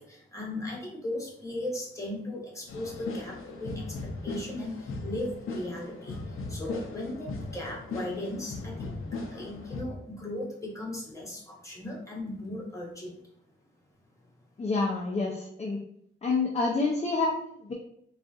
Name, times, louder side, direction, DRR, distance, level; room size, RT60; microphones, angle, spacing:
voice 1, 0.0-13.2, left 1 dB, 15° left, -3 dB, 1.0 m, -37 dB
sound 1, 2.7-9.8, left 3 dB, 85° left, 0.5 m, -38 dB
voice 2, 14.6-15.8 16.2-17.7, left 3 dB, 30° left, -1 dB, 0.5 m, -28 dB
3.8 x 2.4 x 2.4 m, 0.69 s
wide cardioid pair, 110°, 21 cm